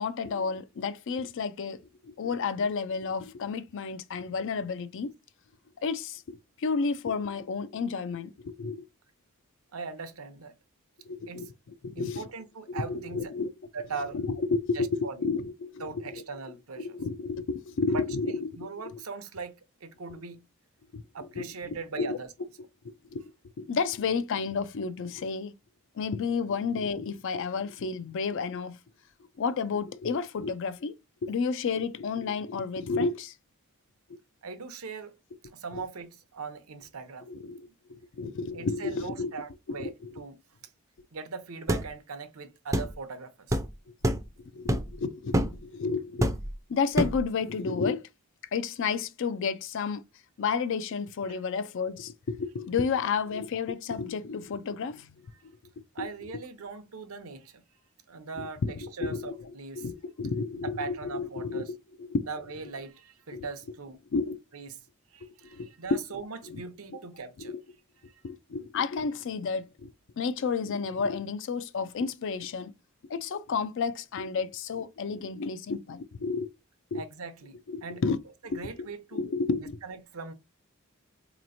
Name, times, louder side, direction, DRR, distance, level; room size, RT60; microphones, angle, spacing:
voice 1, 0.0-5.1 5.8-8.9 11.1-11.5 11.8-12.3 12.7-13.5 14.1-16.2 16.8-18.6 18.9-19.0 20.9-21.0 21.4-21.5 22.0-22.2 23.1-23.2 23.6-25.5 26.0-28.8 29.4-30.9 31.2-33.3 35.7-35.8 37.3-37.6 37.9-39.3 39.8-40.1 44.5-46.3 46.7-48.1 48.5-50.0 50.4-55.1 56.0-56.1 58.4-59.5 59.8-62.3 63.3-63.4 64.1-64.4 65.5-66.0 66.5-66.6 67.4-67.6 68.2-69.9 70.2-72.7 73.1-76.5 76.9-77.0 77.7-78.2 78.5-79.8, left 5 dB, 60° left, 0.4 m, -31 dB
voice 2, 9.7-10.5 11.3-11.5 11.9-13.3 13.7-14.2 14.7-15.3 15.8-17.0 17.9-18.0 18.3-19.5 19.8-20.4 21.1-22.3 34.4-35.1 35.5-37.3 38.5-40.4 41.1-43.6 51.3-51.4 55.3-55.4 55.9-57.6 58.1-59.8 60.6-61.7 62.3-64.0 64.5-64.8 65.1-67.5 68.1-68.2 76.9-78.0 78.4-79.2 79.8-80.3, right 4 dB, 80° right, 0.7 m, -40 dB
Series of Punches, 41.7-41.9 42.7-42.9 43.5-43.7 44.0-44.3 44.7-44.9 45.3-45.6 46.2-46.6 47.0-47.3, right 1 dB, 15° right, 0.4 m, -26 dB
4.0 x 3.0 x 2.6 m
head